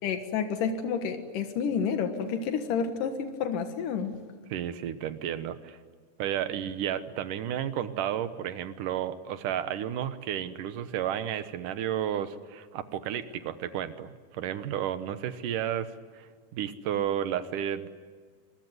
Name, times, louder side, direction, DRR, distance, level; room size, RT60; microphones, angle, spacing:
voice 1, 0.0-4.2, left 6 dB, 90° left, 7 dB, 3.1 m, -30 dB
voice 2, 4.5-5.8 6.2-17.9, right 10 dB, 85° right, 12 dB, 2.8 m, -32 dB
25.5 x 22.0 x 9.5 m, 1.6 s
omnidirectional pair, 3.7 m